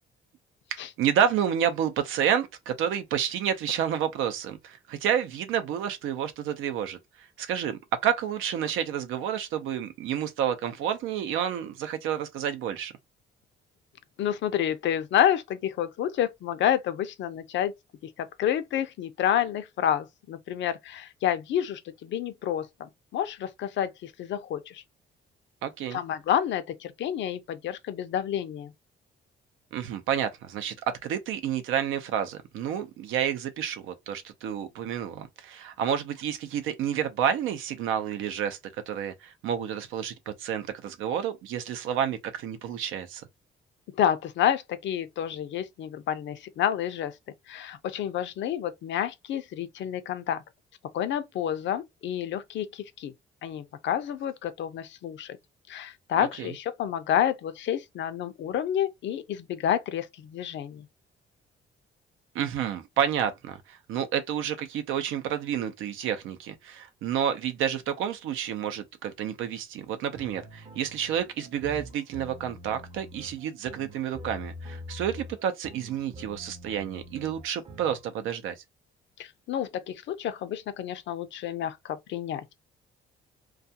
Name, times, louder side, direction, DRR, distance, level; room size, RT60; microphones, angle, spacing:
voice 1, 0.7-12.9 25.6-26.0 29.7-38.6 38.9-43.2 56.2-56.5 62.3-78.6, right 9 dB, 90° right, 0.6 m, -30 dB
voice 2, 14.2-17.7 18.2-24.8 25.9-28.7 43.9-47.2 47.5-50.4 50.9-53.1 53.4-55.4 55.7-60.9 79.2-82.5, left 10 dB, 70° left, 0.5 m, -29 dB
sound 1, 70.1-78.0, equal, 30° right, 0.6 m, -44 dB
2.3 x 2.2 x 2.7 m
cardioid pair, 90°, 20 cm